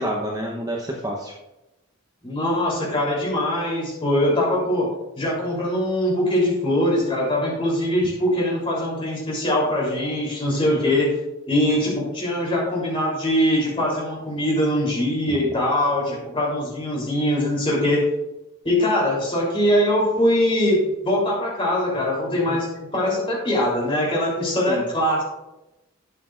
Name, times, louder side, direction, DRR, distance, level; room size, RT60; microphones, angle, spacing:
voice 1, 0.0-1.3 10.7-11.0 15.3-15.4 16.1-16.2 22.5-22.6 24.7-24.9, equal, 15° right, -1 dB, 0.8 m, -29 dB
voice 2, 2.2-4.9 5.2-11.1 11.5-18.0 18.6-22.7 22.9-25.2, left 1 dB, 25° left, -4 dB, 3.2 m, -22 dB
11.5 x 8.4 x 2.4 m, 0.96 s
head